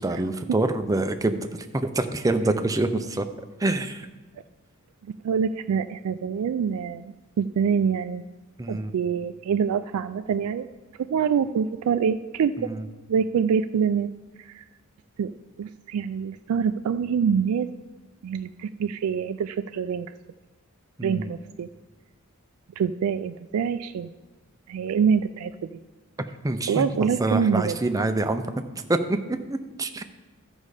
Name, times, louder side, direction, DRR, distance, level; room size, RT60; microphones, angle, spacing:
voice 1, 0.0-3.3 3.6-4.1 8.6-8.9 12.6-12.8 21.0-21.3 26.2-28.4 28.9-30.0, right 2 dB, 15° right, 8 dB, 0.5 m, -26 dB
voice 2, 5.0-8.2 8.7-10.7 11.0-12.7 13.1-14.1 14.4-14.7 15.2-15.3 15.6-17.7 18.2-20.1 21.0-21.7 22.8-24.1 24.7-25.7 26.7-27.8, right 7 dB, 90° right, 9 dB, 0.3 m, -25 dB
13.0 x 5.3 x 4.9 m, 1.2 s
head